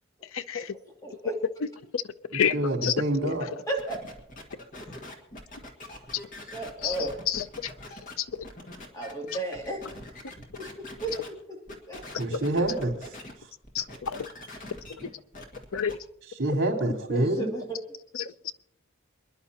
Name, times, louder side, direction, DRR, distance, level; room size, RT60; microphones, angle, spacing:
voice 1, 0.3-0.7 1.9-2.0 2.3-2.5 2.8-2.9 3.2-3.3 6.8-7.0 7.3-7.7 8.2-8.3 12.3-12.4 13.7-14.3 15.7-16.0 18.1-18.3, left 8 dB, 80° left, 13 dB, 0.6 m, -28 dB
voice 2, 1.0-1.4 3.7-4.0 6.4-7.1 8.9-9.8 10.6-10.7 11.0-11.6 11.9-12.0 17.1-17.8, right 2 dB, 15° left, 0 dB, 2.6 m, -33 dB
voice 3, 2.5-3.5 12.2-12.9 16.4-17.5, right 1 dB, 60° right, 0 dB, 3.9 m, -26 dB
sound 1, 3.8-11.3 11.7-13.3 13.6-15.9, left 1 dB, 40° left, 1.9 m, -44 dB
28.5 x 10.5 x 2.9 m, 0.74 s
head